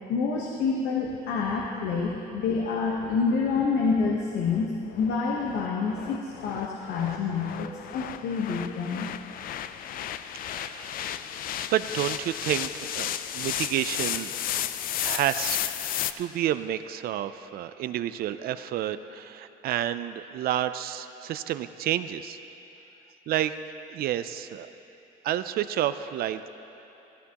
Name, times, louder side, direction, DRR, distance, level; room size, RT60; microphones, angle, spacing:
voice 1, 0.1-9.1, left 4 dB, 80° left, -2 dB, 1.0 m, -27 dB
sound 1, 1.0-16.1, left 11 dB, 60° left, 0.4 m, -34 dB
voice 2, 10.4-11.0 11.7-14.4 15.0-15.6 16.2-22.4 23.3-23.5 23.9-24.7 25.2-26.5, right 12 dB, 65° right, 12 dB, 0.4 m, -30 dB
15.0 x 14.0 x 2.9 m, 3.0 s
cardioid pair, 110°, 17 cm